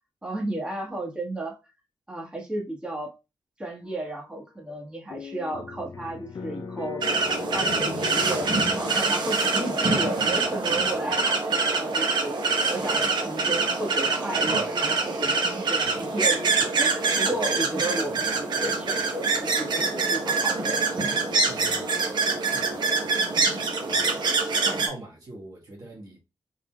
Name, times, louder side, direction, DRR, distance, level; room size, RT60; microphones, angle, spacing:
voice 1, 0.2-1.6 2.1-3.1 3.6-7.0 7.5-12.4 12.7-20.8 23.3-23.6, right 1 dB, 15° right, 1.4 m, -33 dB
sound 1, 3.8-4.3 4.7-4.8 5.1-10.3, left 6 dB, 50° left, 0.4 m, -39 dB
sound 2, 7.0-24.9, right 4 dB, 75° right, 0.9 m, -25 dB
voice 2, 21.5-21.9 22.4-23.2 23.9-24.2 24.6-26.2, right 1 dB, 55° right, 1.3 m, -43 dB
3.9 x 3.7 x 2.2 m
cardioid pair, 85°, 8 cm